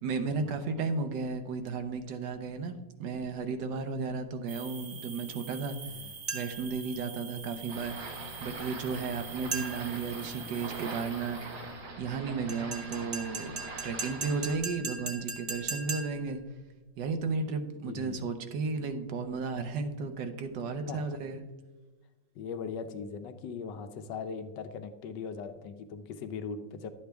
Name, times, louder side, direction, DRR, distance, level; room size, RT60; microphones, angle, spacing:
voice 1, 0.0-5.8 6.3-7.9 8.4-11.4 12.0-13.5 13.8-16.4 17.0-21.4, right 4 dB, 75° right, 7 dB, 1.4 m, -34 dB
sound 1, 4.5-11.7, right 5 dB, 55° right, 1.5 m, -46 dB
sound 2, 6.3-6.7 9.5-10.0 12.5-16.3, right 4 dB, 40° right, 1.1 m, -38 dB
sound 3, 7.7-14.6, right 3 dB, 90° right, 2.3 m, -43 dB
voice 2, 17.8-18.3 20.7-21.2 22.3-26.9, left 5 dB, 75° left, 9 dB, 1.4 m, -40 dB
11.5 x 8.1 x 3.4 m, 1.2 s
omnidirectional pair, 2.0 m